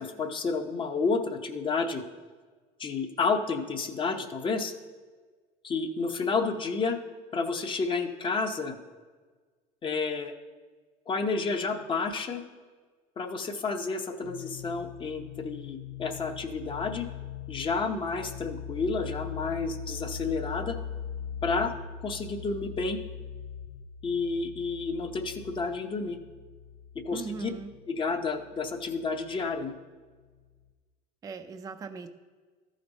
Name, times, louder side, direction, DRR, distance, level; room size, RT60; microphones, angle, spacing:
voice 1, 0.0-2.0 2.8-4.7 5.6-7.0 7.3-8.8 9.8-10.3 11.1-12.4 13.2-17.1 17.5-20.8 21.4-21.7 22.0-23.0 24.0-26.2 27.0-27.5 27.9-29.7, left 4 dB, 25° left, 5 dB, 0.7 m, -30 dB
sound 1, 14.2-29.7, left 8 dB, 60° left, 0.6 m, -41 dB
voice 2, 27.1-27.7 31.2-32.1, right 5 dB, 20° right, 7 dB, 0.4 m, -39 dB
13.0 x 5.2 x 4.0 m, 1.4 s
cardioid pair, 135°, 19 cm